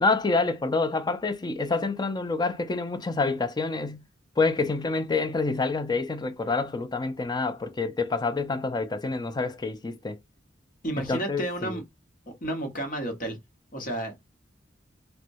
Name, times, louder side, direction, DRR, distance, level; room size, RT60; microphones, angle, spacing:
voice 1, 0.0-4.0 4.4-10.2 11.0-11.8, left 3 dB, 20° left, 0.4 m, -27 dB
voice 2, 10.8-11.8 12.4-13.4 13.7-14.3, right 1 dB, 45° left, 1.0 m, -31 dB
4.3 x 2.1 x 2.6 m
head